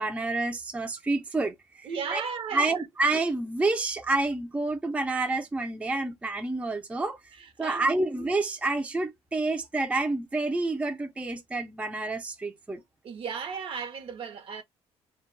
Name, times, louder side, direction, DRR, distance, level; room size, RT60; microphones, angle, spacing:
voice 1, 0.0-2.2 2.5-7.2 7.6-12.8, right 2 dB, 10° right, 0.4 m, -28 dB
voice 2, 1.8-2.9 7.3-8.1 13.0-14.6, right 6 dB, 55° right, 0.8 m, -35 dB
2.3 x 2.2 x 3.0 m
cardioid pair, 115°, 11 cm